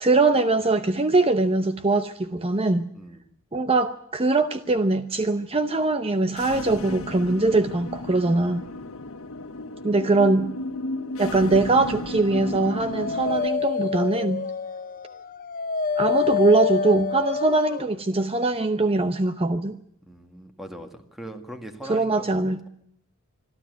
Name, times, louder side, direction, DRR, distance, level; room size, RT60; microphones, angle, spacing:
voice 1, 0.0-2.9 3.5-8.7 9.8-10.5 11.2-14.4 16.0-19.8 21.9-22.7, right 3 dB, 30° right, 10 dB, 0.8 m, -22 dB
voice 2, 2.9-3.3 8.7-8.9 20.1-22.4, right 1 dB, ahead, 5 dB, 1.9 m, -41 dB
sound 1, 6.3-13.5, left 2 dB, 90° left, 1.0 m, -34 dB
Dog, 12.3-17.9, left 6 dB, 40° left, 0.8 m, -28 dB
25.5 x 12.5 x 9.4 m, 0.71 s
head